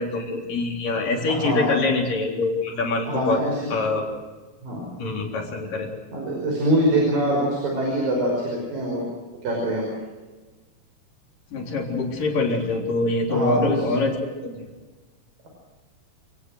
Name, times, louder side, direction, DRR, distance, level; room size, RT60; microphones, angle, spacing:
voice 1, 0.0-3.4 3.7-4.1 5.0-5.9 11.5-14.7, left 3 dB, 70° left, 0 dB, 5.3 m, -24 dB
voice 2, 1.3-1.8 3.1-3.8 4.6-4.9 6.1-9.1 9.4-9.9 13.3-14.0, right 1 dB, 75° right, 0 dB, 7.0 m, -24 dB
29.0 x 19.0 x 6.5 m, 1.3 s
omnidirectional pair, 4.0 m